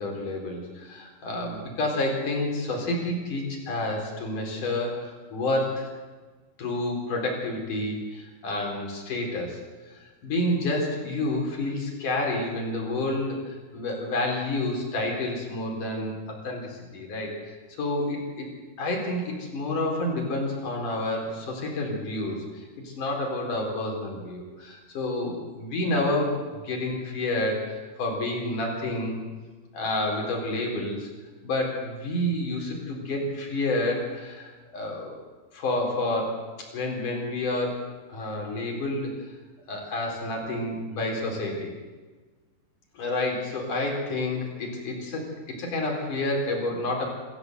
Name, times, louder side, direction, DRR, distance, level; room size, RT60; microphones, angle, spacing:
voice 1, 0.0-5.9 6.6-9.6 10.2-17.4 17.8-18.5 18.8-29.2 29.7-31.1 31.4-35.1 35.5-37.8 38.1-39.1 39.7-41.7 42.9-47.0, left 2 dB, 40° left, 0 dB, 5.3 m, -29 dB
26.0 x 14.5 x 8.1 m, 1.4 s
omnidirectional pair, 5.7 m